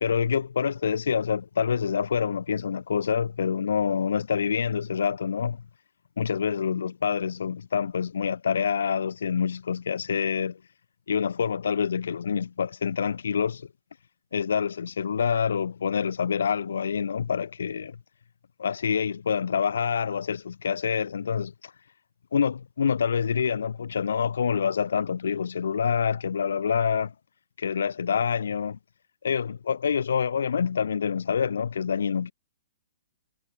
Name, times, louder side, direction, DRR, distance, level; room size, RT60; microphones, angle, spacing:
voice 1, 0.0-5.6 6.2-10.6 11.1-13.7 14.3-18.0 18.6-21.7 22.3-27.1 27.6-28.8 29.2-32.3, left 7 dB, 80° left, 1.9 m, -26 dB
hypercardioid pair, 145°, 0 cm